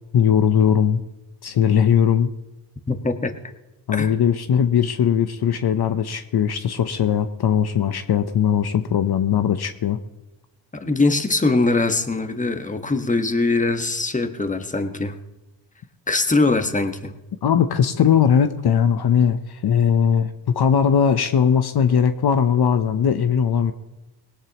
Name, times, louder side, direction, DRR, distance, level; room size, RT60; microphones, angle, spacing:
voice 1, 0.1-1.0 1.4-2.3 3.9-10.0 17.4-23.7, left 8 dB, 60° left, 9 dB, 0.9 m, -19 dB
voice 2, 2.9-3.3 3.9-4.1 10.7-15.1 16.1-17.1, left 3 dB, 15° left, 7 dB, 1.4 m, -22 dB
19.5 x 18.0 x 3.0 m, 1.0 s
cardioid pair, 75°, 45 cm